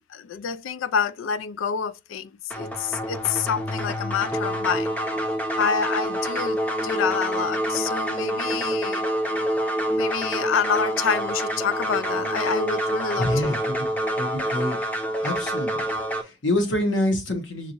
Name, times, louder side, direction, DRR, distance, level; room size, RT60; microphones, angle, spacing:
voice 1, 0.0-4.9 5.6-9.1 9.9-13.6, left 6 dB, 90° left, 0.4 m, -27 dB
sound 1, 2.5-16.2, equal, 10° left, 0.6 m, -27 dB
voice 2, 13.2-13.8 14.2-14.8 15.2-15.9 16.2-17.7, left 1 dB, 70° left, 1.2 m, -26 dB
5.7 x 2.6 x 2.9 m
head